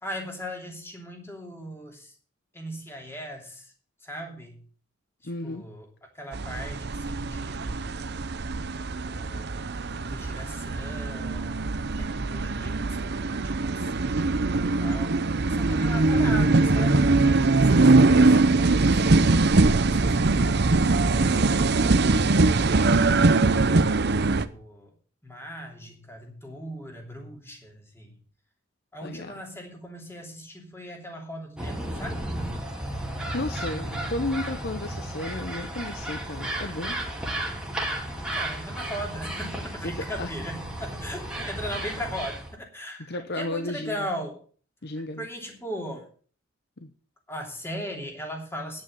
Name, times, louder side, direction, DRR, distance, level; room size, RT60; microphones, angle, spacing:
voice 1, 0.0-2.1 2.5-3.7 4.0-4.6 5.4-5.9 6.1-8.2 9.0-21.3 21.9-22.8 24.1-24.9 25.2-28.1 28.9-32.2 38.1-42.4 42.7-44.4 45.2-46.0 47.3-48.8, equal, 10° left, 2 dB, 3.0 m, -39 dB
voice 2, 5.2-5.7 29.0-29.4 33.3-37.0 39.8-40.3 43.1-44.1 44.8-45.3 46.8-46.9, left 2 dB, 50° left, 9 dB, 0.8 m, -33 dB
sound 1, 6.3-24.5, right 3 dB, 55° right, 0.7 m, -22 dB
sound 2, 31.6-42.6, right 1 dB, 5° right, 2.3 m, -33 dB
10.0 x 8.7 x 7.1 m, 0.43 s
head